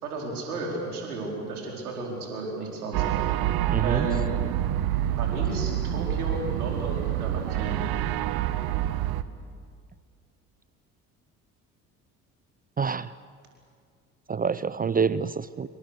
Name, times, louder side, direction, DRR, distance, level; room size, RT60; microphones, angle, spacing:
voice 1, 0.0-3.1 3.8-4.2 5.2-7.9, right 2 dB, 85° right, -1 dB, 4.5 m, -33 dB
sound 1, 2.9-9.2, right 12 dB, 55° right, 1.1 m, -27 dB
voice 2, 3.7-4.1 12.8-13.1 14.3-15.7, right 6 dB, 20° right, 17 dB, 0.6 m, -26 dB
26.0 x 24.0 x 6.7 m, 2.1 s
hypercardioid pair, 55°, 43 cm